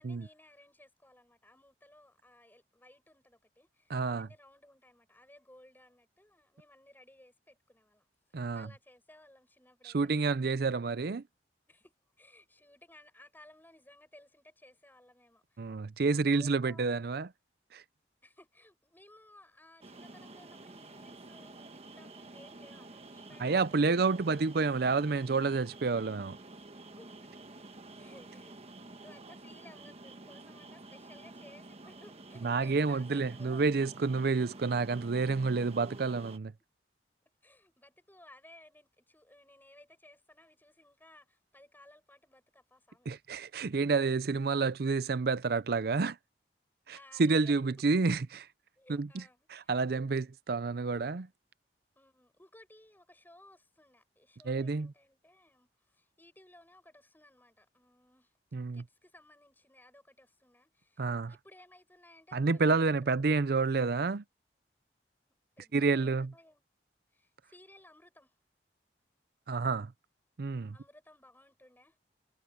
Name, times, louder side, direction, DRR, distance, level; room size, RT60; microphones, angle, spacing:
voice 1, 0.0-10.0 11.7-15.7 16.1-16.9 18.2-23.9 27.0-27.3 28.0-28.6 29.0-33.7 34.0-34.1 37.4-43.2 46.9-47.6 48.8-49.7 52.0-58.3 58.7-63.3 65.6-66.6 67.1-68.3 70.7-72.0, left 1 dB, 10° left, 7.0 m, -59 dB
voice 2, 3.9-4.3 8.3-8.7 9.8-11.2 15.6-17.3 17.7-17.8 23.4-26.4 32.4-36.5 43.1-46.2 46.9-48.5 48.9-49.2 49.5-51.3 54.5-54.9 58.5-58.8 61.0-61.3 62.3-64.2 65.7-66.3 69.5-69.9 70.4-70.7, right 4 dB, 60° right, 0.5 m, -29 dB
sound 1, 19.8-36.4, right 2 dB, 35° right, 1.4 m, -50 dB
head